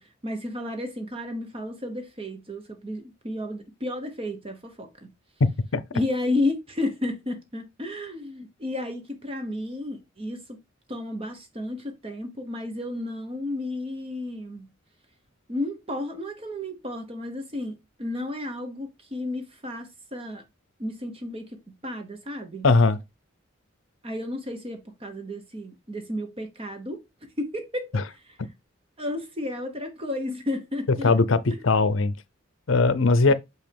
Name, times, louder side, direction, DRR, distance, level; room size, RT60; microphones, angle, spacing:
voice 1, 0.0-4.9 5.9-10.6 10.9-14.7 15.5-20.4 20.8-22.7 24.0-27.0 27.4-28.4 29.0-31.1 33.3-33.4, left 1 dB, 25° right, 1.0 m, -32 dB
voice 2, 22.6-23.0 31.0-32.1 32.7-33.3, left 3 dB, 70° left, 0.6 m, -19 dB
6.2 x 5.4 x 3.4 m
head